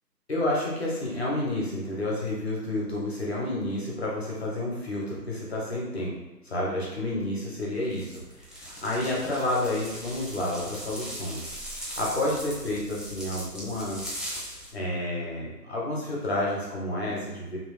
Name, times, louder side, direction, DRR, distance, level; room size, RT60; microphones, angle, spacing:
voice 1, 0.3-6.1 6.4-8.2 8.6-11.4 12.0-14.1 14.7-17.6, left 1 dB, 40° left, -4 dB, 0.8 m, -30 dB
sound 1, 7.9-14.7, equal, ahead, 0.4 m, -39 dB
2.9 x 2.3 x 3.1 m, 1.1 s
figure-of-eight pair, 160°, 50 cm